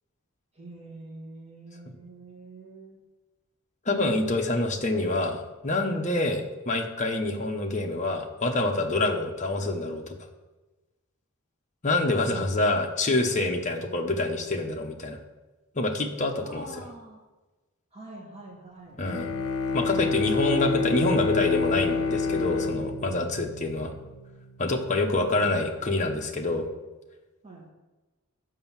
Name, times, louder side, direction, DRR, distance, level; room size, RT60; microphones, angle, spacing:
voice 1, 0.5-3.0 12.3-12.6 16.4-17.2 17.9-19.0 25.2-25.5 27.4-27.7, right 2 dB, 30° right, -4 dB, 2.1 m, -44 dB
voice 2, 3.8-10.2 11.8-15.2 15.7-16.7 19.0-19.3 19.7-23.9 24.6-26.7, left 2 dB, 35° left, 2 dB, 1.0 m, -26 dB
Bowed string instrument, 19.0-24.2, left 4 dB, 80° left, 0.9 m, -28 dB
7.7 x 5.3 x 7.3 m, 1.1 s
head